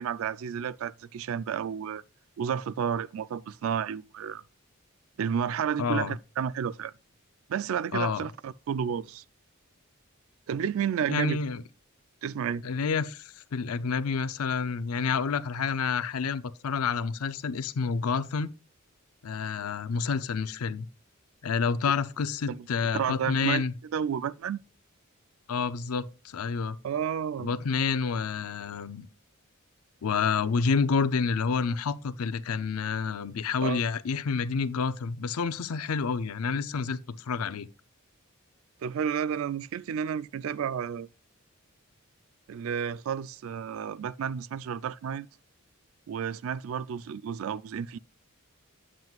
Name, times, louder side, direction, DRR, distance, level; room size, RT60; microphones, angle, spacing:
voice 1, 0.0-2.0 2.4-4.4 5.2-6.9 7.5-9.2 10.5-11.4 12.2-12.6 22.5-22.7 22.9-24.6 26.8-27.5 33.6-33.8 38.8-41.1 42.5-45.3 46.1-48.0, right 8 dB, 70° right, 0.3 m, -31 dB
voice 2, 5.8-6.1 7.9-8.3 11.1-11.6 12.6-18.5 19.2-20.9 21.4-23.7 25.5-26.8 27.4-29.1 30.0-37.7, left 5 dB, 90° left, 0.5 m, -29 dB
9.3 x 7.5 x 2.4 m
head